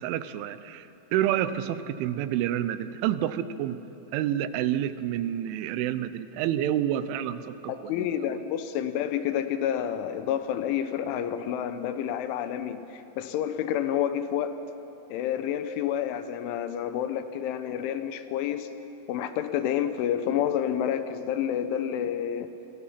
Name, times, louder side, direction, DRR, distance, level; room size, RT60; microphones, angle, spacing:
voice 1, 0.0-3.8 4.1-8.1, right 11 dB, 85° right, 12 dB, 3.2 m, -29 dB
voice 2, 7.7-14.5 15.1-18.7 19.1-22.5, left 10 dB, 85° left, 9 dB, 3.4 m, -29 dB
29.0 x 21.5 x 5.8 m, 3.0 s
omnidirectional pair, 5.4 m